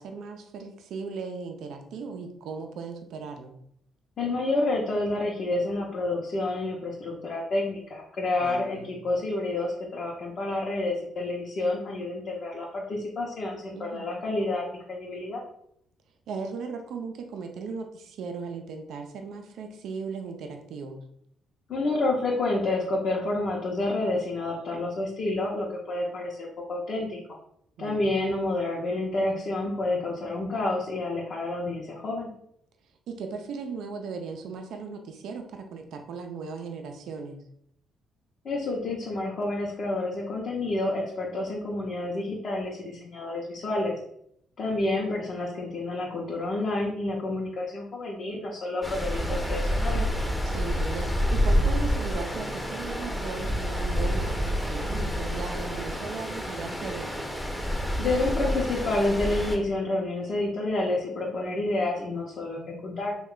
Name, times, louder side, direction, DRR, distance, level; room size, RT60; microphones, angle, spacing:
voice 1, 0.0-3.5 8.4-8.9 13.7-14.2 16.3-21.0 27.8-28.1 33.1-37.4 50.4-57.3, right 5 dB, 75° right, 5 dB, 0.4 m, -37 dB
voice 2, 4.2-15.4 21.7-27.2 27.8-32.3 38.4-44.0 44.6-50.1 58.0-63.2, left 2 dB, 55° left, -4 dB, 0.7 m, -29 dB
Stream, 48.8-59.6, equal, 5° left, 0.7 m, -28 dB
3.1 x 2.2 x 3.7 m, 0.71 s
cardioid pair, 90°, 0 cm